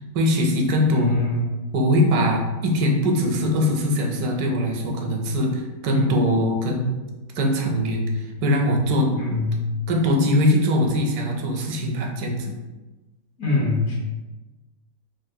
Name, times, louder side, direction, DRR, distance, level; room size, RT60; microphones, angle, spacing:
voice 1, 0.1-1.2 1.7-7.0 7.4-9.1 9.9-12.5, left 1 dB, 80° right, 2 dB, 1.1 m, -21 dB
voice 2, 0.9-1.6 5.9-6.2 9.1-9.6 13.4-13.9, left 1 dB, 70° left, -6 dB, 1.3 m, -24 dB
3.4 x 2.5 x 2.7 m, 1.2 s
omnidirectional pair, 1.6 m